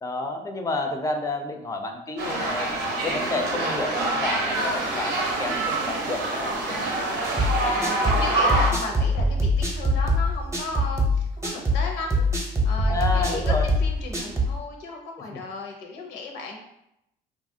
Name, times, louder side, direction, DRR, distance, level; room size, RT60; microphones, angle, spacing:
voice 1, 0.0-2.8 3.0-6.9 12.9-13.7 15.3-15.4, left 2 dB, 20° left, 4 dB, 0.4 m, -30 dB
sound 1, 2.2-8.7, right 2 dB, 90° right, 0.7 m, -26 dB
sound 2, 4.5-8.6, right 5 dB, 50° right, 0.4 m, -42 dB
voice 2, 7.3-16.6, left 3 dB, 90° left, 1 dB, 0.7 m, -35 dB
sound 3, 7.4-14.6, left 1 dB, 15° right, 0.7 m, -23 dB
2.8 x 2.4 x 2.6 m, 0.81 s
cardioid pair, 110°, 17 cm